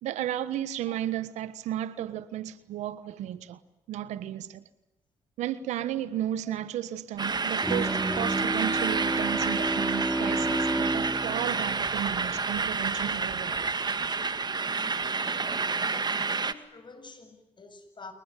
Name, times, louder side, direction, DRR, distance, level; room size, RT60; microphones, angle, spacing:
voice 1, 0.0-3.6 3.9-4.6 5.4-13.7, right 12 dB, 80° right, 1.4 m, -34 dB
sound 1, 7.2-16.5, right 4 dB, 35° right, 1.9 m, -29 dB
Bowed string instrument, 7.6-12.7, right 1 dB, 5° right, 3.9 m, -31 dB
voice 2, 15.9-18.1, left 4 dB, 40° left, 7.5 m, -47 dB
28.5 x 22.5 x 9.2 m
supercardioid pair, 50°, 12 cm